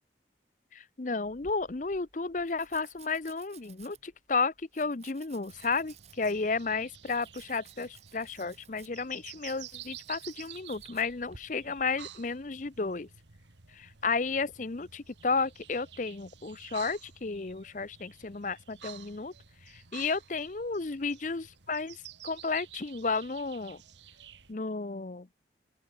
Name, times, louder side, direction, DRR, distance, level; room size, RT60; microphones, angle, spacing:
voice 1, 0.7-13.1 13.7-19.3 19.6-23.8 24.5-25.3, left 4 dB, 45° left, 0.7 m, -33 dB
Domestic sounds home sounds, 1.2-11.4, right 6 dB, 35° right, 3.8 m, -57 dB
sound 1, 5.5-24.5, right 10 dB, 80° right, 1.8 m, -51 dB
open air
head